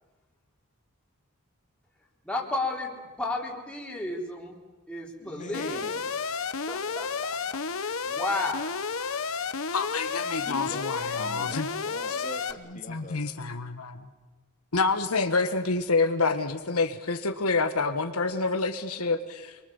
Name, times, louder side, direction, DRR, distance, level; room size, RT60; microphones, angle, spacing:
voice 1, 2.2-2.9 3.2-4.6 4.9-5.8 6.7-7.4 7.8-8.7, left 2 dB, 5° left, -2 dB, 3.9 m, -33 dB
voice 2, 5.2-6.1 10.4-13.2, left 1 dB, 35° left, 4 dB, 2.4 m, -42 dB
Alarm, 5.5-12.5, left 5 dB, 65° left, 1.0 m, -31 dB
voice 3, 9.7-11.7 12.9-14.1 14.7-19.6, left 3 dB, 80° left, 7 dB, 1.4 m, -28 dB
26.5 x 23.0 x 7.2 m, 1.2 s
head